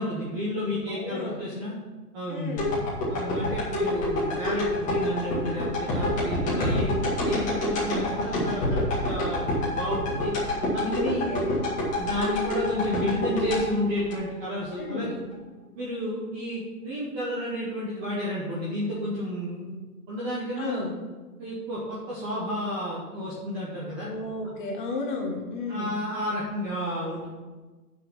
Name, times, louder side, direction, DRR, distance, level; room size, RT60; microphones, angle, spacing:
voice 1, 0.0-1.7 2.1-2.6 3.1-10.3 10.7-11.2 12.0-15.2 15.8-19.7 20.1-20.9 21.4-24.1 24.4-24.5 25.7-27.3, equal, 10° right, -6 dB, 0.7 m, -31 dB
voice 2, 0.9-1.4 2.3-2.7 6.5-6.9 10.8-11.6 14.8-15.1 20.6-20.9 24.0-26.0, left 3 dB, 30° left, 1 dB, 1.6 m, -33 dB
sound 1, 2.6-14.8 15.2-15.3, left 1 dB, 15° left, 2.1 m, -27 dB
7.3 x 6.1 x 7.2 m, 1.3 s
hypercardioid pair, 165°, 46 cm